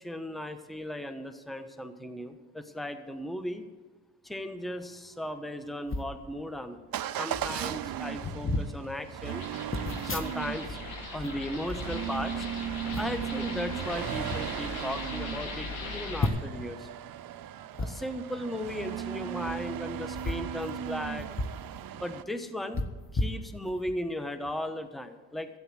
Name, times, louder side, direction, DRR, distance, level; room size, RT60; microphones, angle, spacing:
voice 1, 0.0-3.6 4.2-6.8 7.1-9.4 10.0-10.8 11.1-12.5 13.0-16.9 17.8-21.3 21.9-22.8 23.1-25.5, left 1 dB, ahead, 9 dB, 1.1 m, -36 dB
sound 1, 5.9-6.2 7.0-7.1 7.3-7.6 8.2-8.7 9.7-10.7 11.0-12.4 12.9-13.3 14.0-14.4 15.0-15.1 15.3-15.4 16.2-16.7 17.7-17.9 19.3-19.5 20.1-21.6 21.9-22.0 22.7-23.9 24.4-24.6, left 2 dB, 25° left, 1.4 m, -34 dB
Motor vehicle (road) / Engine starting / Accelerating revving vroom, 6.9-22.2, right 10 dB, 50° right, 0.6 m, -37 dB
sound 2, 9.2-16.3, left 4 dB, 75° left, 2.5 m, -40 dB
12.5 x 9.3 x 7.7 m, 1.3 s
hypercardioid pair, 45°, 47 cm